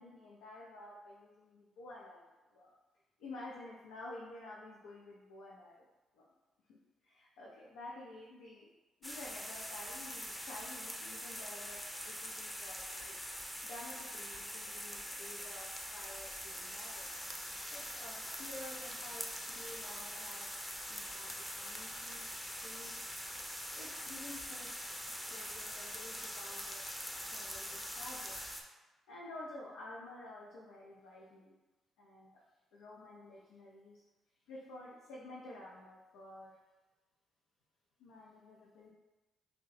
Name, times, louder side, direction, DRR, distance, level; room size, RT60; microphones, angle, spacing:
voice 1, 0.0-2.3 2.5-2.7 3.2-5.9 6.1-6.3 6.7-8.7 9.0-13.1 13.6-17.1 17.7-20.6 20.9-23.0 23.7-24.7 25.0-26.8 27.3-28.5 29.1-31.6 32.0-32.4 32.7-34.0 34.5-36.6 38.0-38.9, left 2 dB, 85° left, -4 dB, 0.4 m, -51 dB
sound 1, 9.0-28.6, equal, 5° left, 0.5 m, -43 dB
2.7 x 2.1 x 3.9 m, 1.1 s
supercardioid pair, 55°, 0 cm